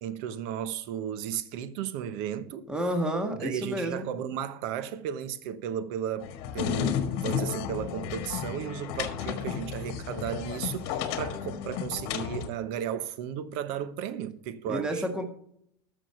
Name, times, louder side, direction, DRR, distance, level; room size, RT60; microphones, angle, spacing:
voice 1, 0.0-2.7 3.3-15.1, right 9 dB, 60° right, 0.9 m, -34 dB
voice 2, 2.7-4.1 14.7-15.3, right 1 dB, 5° right, 1.6 m, -30 dB
sound 1, 6.2-12.5, left 8 dB, 60° left, 1.4 m, -32 dB
13.0 x 6.4 x 4.4 m
supercardioid pair, 115°, 13 cm